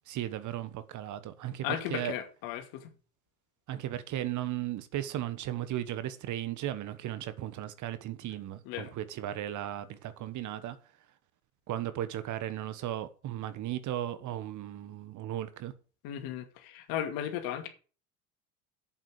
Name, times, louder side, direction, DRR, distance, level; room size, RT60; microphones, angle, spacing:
voice 1, 0.1-2.1 3.7-10.8 11.7-15.7, right 12 dB, 45° right, 1.3 m, -36 dB
voice 2, 1.6-2.9 8.7-8.9 16.0-17.7, left 10 dB, 60° left, 2.4 m, -35 dB
8.3 x 7.8 x 6.7 m
hypercardioid pair, 75°, 41 cm